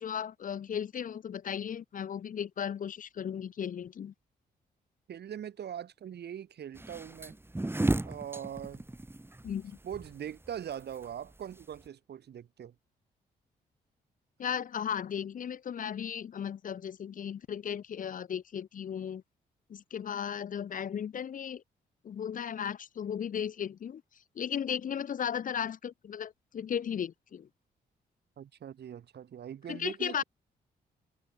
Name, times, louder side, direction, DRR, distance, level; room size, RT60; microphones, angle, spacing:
voice 1, 0.0-4.1 9.4-9.8 14.4-19.2 19.7-21.6 22.0-24.0 24.4-27.5 29.7-30.2, left 8 dB, 50° left, 0.6 m, -35 dB
voice 2, 5.1-7.4 8.0-8.8 9.8-12.7 28.4-30.2, right 9 dB, 70° right, 3.4 m, -41 dB
sound 1, 6.8-11.9, right 1 dB, 10° right, 2.1 m, -34 dB
supercardioid pair, 60°, 18 cm